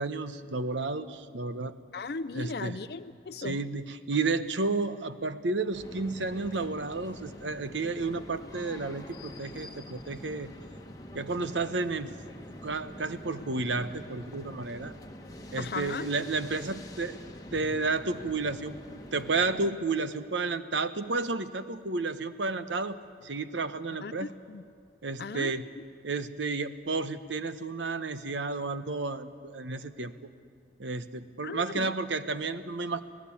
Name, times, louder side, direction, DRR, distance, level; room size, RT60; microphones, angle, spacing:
voice 1, 0.0-1.7 2.3-2.8 3.4-10.5 11.1-12.1 12.6-14.9 15.5-17.2 17.5-18.7 19.1-24.3 25.0-25.7 26.0-30.1 30.8-33.0, right 3 dB, 80° right, 11 dB, 1.0 m, -32 dB
voice 2, 1.9-3.6 15.6-16.1 24.0-24.6 25.2-25.8 31.4-31.9, left 4 dB, 55° left, 12 dB, 0.5 m, -37 dB
sound 1, 5.7-19.7, left 1 dB, 20° left, 1.4 m, -45 dB
24.5 x 17.0 x 8.5 m, 2.3 s
head